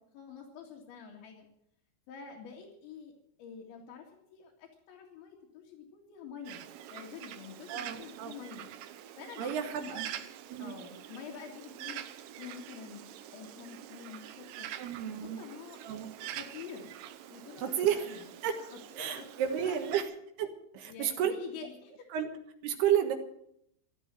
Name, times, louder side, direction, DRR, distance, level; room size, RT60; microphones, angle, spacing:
voice 1, 0.1-1.5 2.1-3.1 3.4-6.6 6.9-8.7 9.2-10.0 10.6-12.0 12.4-13.1 13.3-14.7 15.0-15.8 16.3-16.9 17.3-18.2 18.7-20.0 20.9-21.9, left 6 dB, 75° left, -3 dB, 4.5 m, -47 dB
Bird, 6.4-20.0, right 11 dB, 85° right, 1.9 m, -46 dB
voice 2, 7.7-8.3 9.4-10.1 10.5-10.8 14.8-15.5 15.8-16.1 17.6-18.6 19.0-20.1 20.4-20.5 20.7-21.3 22.1-22.3 22.6-23.2, right 9 dB, 70° right, 6 dB, 3.3 m, -31 dB
14.5 x 12.5 x 7.7 m, 0.73 s
omnidirectional pair, 5.3 m